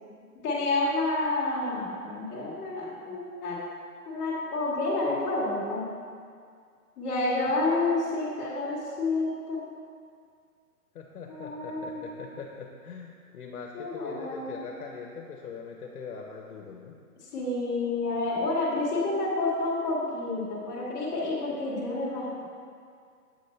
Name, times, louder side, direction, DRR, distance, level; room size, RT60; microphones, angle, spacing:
voice 1, 0.4-3.6 4.1-5.9 7.0-9.6 11.3-12.1 13.7-14.6 17.3-22.4, left 2 dB, 15° left, -8 dB, 1.3 m, -29 dB
voice 2, 10.9-17.0, left 5 dB, 65° left, 0 dB, 0.9 m, -41 dB
7.5 x 5.2 x 4.3 m, 2.2 s
hypercardioid pair, 160°, 46 cm